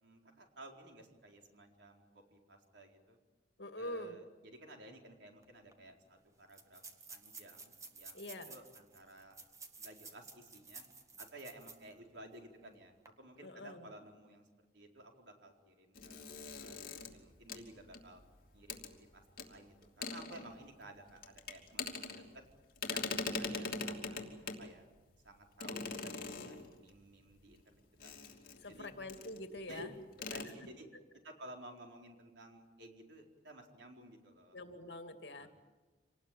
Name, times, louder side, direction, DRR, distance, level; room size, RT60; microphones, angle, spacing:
voice 1, 0.0-3.2 3.8-6.8 7.1-9.4 9.8-10.8 11.2-14.4 14.7-18.2 18.5-18.8 19.1-22.4 22.9-24.2 24.6-24.9 25.2-27.6 28.0-28.2 28.7-28.9 29.7-29.9 30.3-30.9 31.2-34.6 35.4-35.5, right 1 dB, 90° right, 2 dB, 4.4 m, -55 dB
voice 2, 3.6-4.2 8.1-8.5 13.4-13.9 28.6-29.9 34.5-35.5, left 1 dB, 75° left, 6 dB, 2.5 m, -45 dB
sound 1, 5.4-5.5 5.7-5.8 6.5-11.9 12.3-12.4 12.9-13.1, right 4 dB, 20° right, 1.8 m, -53 dB
sound 2, 16.0-18.3 18.7-18.9 19.4-19.5 19.8-20.8 21.1-22.5 22.8-24.7 25.6-26.9 28.0-28.7 29.1-29.4 29.7-29.8 30.1-30.4, left 4 dB, 55° left, 3.0 m, -41 dB
26.5 x 19.0 x 9.3 m, 1.2 s
head